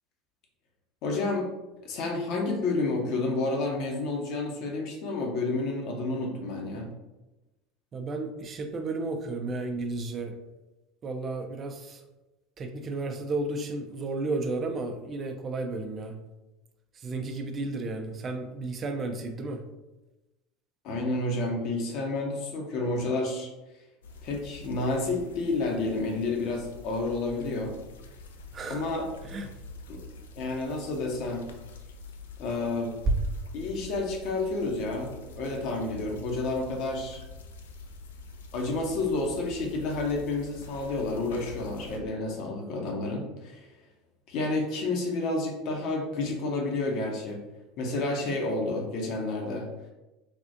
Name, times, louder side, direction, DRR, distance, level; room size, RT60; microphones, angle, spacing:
voice 1, 1.0-1.5 1.8-6.9 20.8-23.5 24.2-27.7 28.6-29.1 29.9-30.0 30.4-31.4 32.4-32.9 33.5-37.2 38.5-43.7 44.3-47.4 47.8-49.7, left 2 dB, 55° left, 1 dB, 0.7 m, -30 dB
voice 2, 7.9-10.4 11.0-12.0 12.6-16.1 17.0-19.6 28.5-28.8 29.3-29.5 33.1-33.2, right 2 dB, 35° right, 5 dB, 0.5 m, -32 dB
sound 1, 24.0-42.0, left 3 dB, 75° left, 0.3 m, -46 dB
3.4 x 2.4 x 2.6 m, 1.0 s
hypercardioid pair, 75°, 0 cm